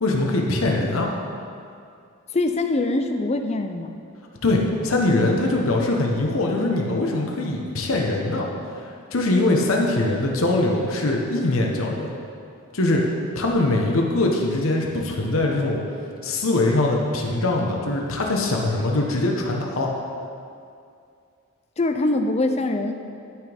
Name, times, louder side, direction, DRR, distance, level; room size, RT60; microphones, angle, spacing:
voice 1, 0.0-1.1 4.4-8.5 8.7-8.8 9.1-12.1 12.7-13.1 13.3-15.8 16.2-19.9, left 2 dB, 80° left, 0 dB, 1.1 m, -22 dB
voice 2, 2.3-3.9 21.8-22.9, left 2 dB, 30° left, 6 dB, 0.5 m, -23 dB
12.5 x 6.1 x 3.5 m, 2.4 s
head